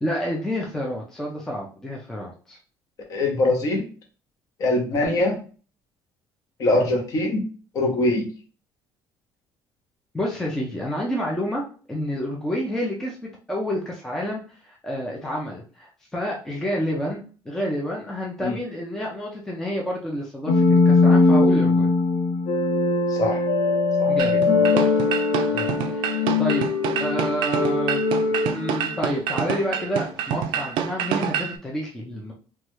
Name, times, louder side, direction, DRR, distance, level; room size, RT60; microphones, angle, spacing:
voice 1, 0.0-2.6 10.1-21.9 24.1-24.4 25.5-26.7 27.0-32.3, equal, 5° left, -3 dB, 0.4 m, -29 dB
voice 2, 3.1-3.8 4.6-5.4 6.6-7.4 7.7-8.3 18.4-18.5 23.1-23.4 24.0-24.1 24.7-24.9, left 2 dB, 40° left, 2 dB, 0.8 m, -22 dB
sound 1, 20.5-29.4, left 3 dB, 90° left, 0.7 m, -21 dB
sound 2, 24.2-31.6, right 9 dB, 70° right, 0.3 m, -27 dB
3.1 x 2.3 x 3.0 m, 0.39 s
cardioid pair, 180°, 8 cm